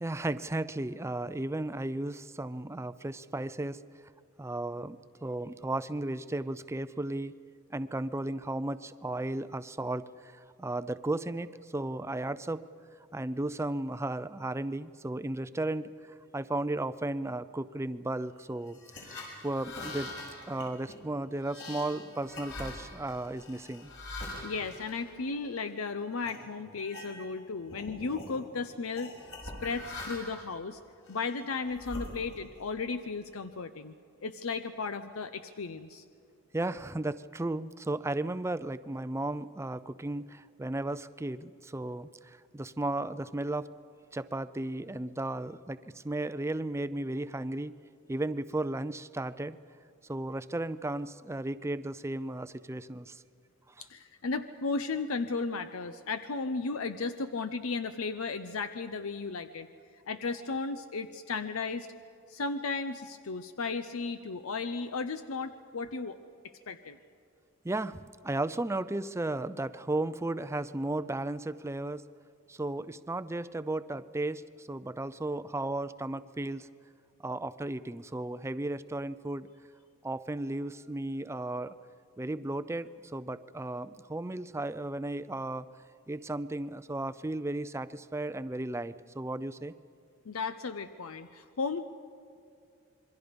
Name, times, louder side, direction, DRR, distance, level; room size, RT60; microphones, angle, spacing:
voice 1, 0.0-3.8 4.4-7.3 7.7-10.1 10.6-12.7 13.1-15.9 16.3-20.1 20.5-23.9 36.5-42.1 42.5-43.7 44.1-47.7 48.1-49.6 50.1-53.2 67.6-72.0 72.5-76.7 77.2-79.5 80.0-81.7 82.2-85.7 86.1-89.7, right 2 dB, 15° right, 14 dB, 0.5 m, -34 dB
sound 1, 18.7-25.7 26.2-26.4 26.8-27.4 27.7-28.3 28.9-30.5 31.0-32.6, left 2 dB, 65° left, 6.4 m, -43 dB
voice 2, 24.4-29.1 29.6-30.8 31.1-33.9 34.2-36.0 53.9-59.7 60.1-61.9 62.3-66.2 66.7-67.0 90.2-91.8, left 4 dB, 85° left, 10 dB, 0.7 m, -35 dB
27.0 x 22.5 x 5.2 m, 2.4 s
head